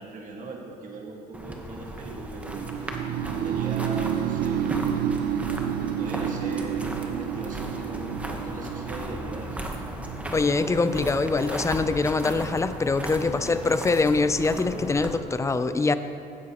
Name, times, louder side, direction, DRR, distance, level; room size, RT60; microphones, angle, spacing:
voice 1, 0.0-5.0 5.9-9.7 13.1-13.7, right 3 dB, 50° right, 0 dB, 1.7 m, -40 dB
sound 1, 1.3-15.2, right 1 dB, 10° right, 1.1 m, -36 dB
sound 2, 2.5-12.4, right 9 dB, 65° right, 0.4 m, -30 dB
voice 2, 10.3-16.0, left 3 dB, 15° left, 11 dB, 0.4 m, -24 dB
16.0 x 9.6 x 3.0 m, 2.5 s
cardioid pair, 110°, 17 cm